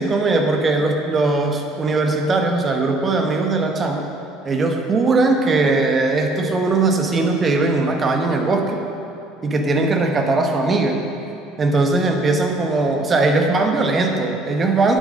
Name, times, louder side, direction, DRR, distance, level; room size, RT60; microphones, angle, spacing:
voice 1, 0.0-4.1 4.4-8.8 9.4-11.0 11.6-15.0, right 3 dB, 30° right, 3 dB, 1.3 m, -19 dB
10.5 x 8.8 x 5.3 m, 2.6 s
figure-of-eight pair, 70°, 0 cm